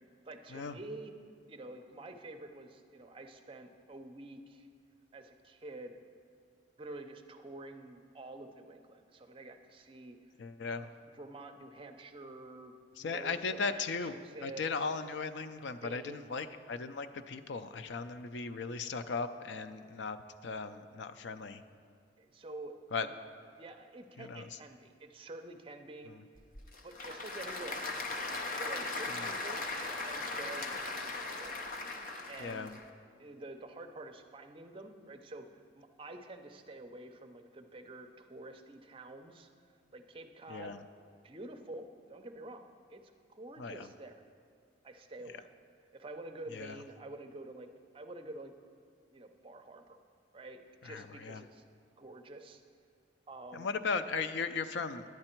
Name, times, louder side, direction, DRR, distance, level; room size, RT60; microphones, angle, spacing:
voice 1, 0.3-1.1 1.5-4.7 5.1-5.9 6.8-10.3 10.7-12.7 13.0-13.4 13.7-14.6 15.8-16.3 22.2-22.7 23.0-23.1 23.5-26.1 26.8-28.1 28.4-29.6 30.0-31.5 32.3-32.8 33.2-39.5 39.9-40.7 41.2-43.0 43.3-44.2 44.8-45.5 45.9-47.7 47.9-48.5 49.1-50.0 50.3-51.6 52.0-52.6 53.3-53.8, right 2 dB, 30° right, 5 dB, 0.5 m, -48 dB
voice 2, 10.4-10.9 13.0-14.1 14.4-20.2 20.4-21.6 22.9-23.1 24.2-24.5 29.2-29.3 32.4-32.7 40.5-40.8 43.6-43.9 46.5-46.7 50.8-51.4 53.5-55.0, left 4 dB, 75° left, 11 dB, 0.4 m, -37 dB
Applause / Crowd, 26.4-32.8, left 3 dB, 45° left, 0.7 m, -38 dB
10.5 x 8.8 x 4.4 m, 2.2 s
head